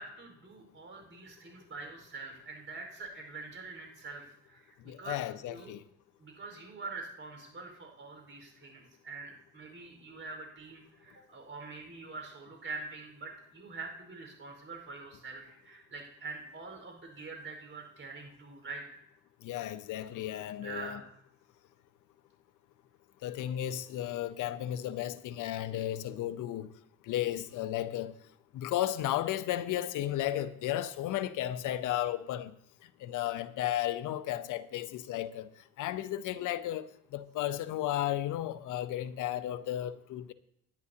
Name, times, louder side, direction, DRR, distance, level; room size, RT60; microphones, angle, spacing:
voice 1, 0.0-5.2 5.5-5.7 6.2-19.0 20.6-21.1, right 3 dB, 45° right, 4.7 m, -45 dB
voice 2, 4.9-5.8 19.4-21.0 23.2-26.7 27.1-28.1 28.5-32.5 33.0-35.5 35.8-40.3, left 12 dB, 85° left, 0.7 m, -34 dB
18.0 x 10.5 x 2.8 m
cardioid pair, 90°, 30 cm